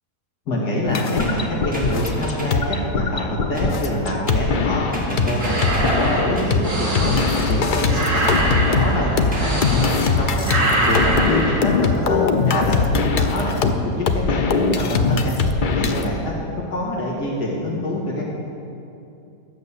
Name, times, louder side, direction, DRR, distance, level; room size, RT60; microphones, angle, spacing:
voice 1, 0.5-2.6 2.9-5.6 5.9-7.2 7.5-10.5 10.9-15.4 15.7-16.3 16.7-18.3, left 1 dB, 70° left, -3 dB, 2.4 m, -25 dB
sound 1, 0.9-5.3 5.6-6.6 7.0-16.1, left 4 dB, 85° left, 0.4 m, -21 dB
sound 2, 1.2-2.7 3.5-3.9 4.3-4.7 4.9-6.7 7.8-8.2 9.3-9.8 10.9-11.3, right 1 dB, 5° right, 1.9 m, -32 dB
sound 3, 5.4-10.2 10.4-11.6, right 1 dB, 65° right, 3.0 m, -23 dB
12.5 x 6.8 x 8.4 m, 2.7 s
omnidirectional pair, 1.8 m